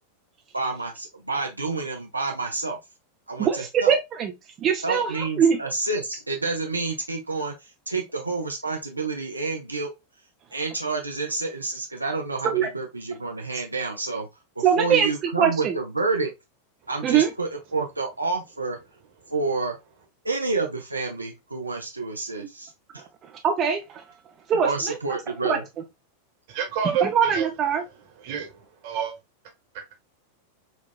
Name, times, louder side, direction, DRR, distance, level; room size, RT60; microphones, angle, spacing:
voice 1, 0.5-2.8 3.3-4.0 4.8-7.5 7.9-9.9 10.5-14.3 14.6-16.3 16.9-18.8 19.3-19.7 20.2-23.0 24.5-25.6, right 3 dB, 85° right, 0.5 m, -29 dB
voice 2, 3.4-4.3 4.6-5.6 12.4-12.7 14.6-15.1 15.4-15.7 17.0-17.3 22.4-22.5 23.4-24.0 24.5-25.2 25.4-25.6 27.0-27.8, right 7 dB, 30° right, 0.4 m, -22 dB
voice 3, 26.5-27.5 28.2-29.1 29.7-29.9, right 7 dB, 50° right, 1.1 m, -29 dB
4.2 x 2.3 x 2.4 m
figure-of-eight pair, 90°, 0 cm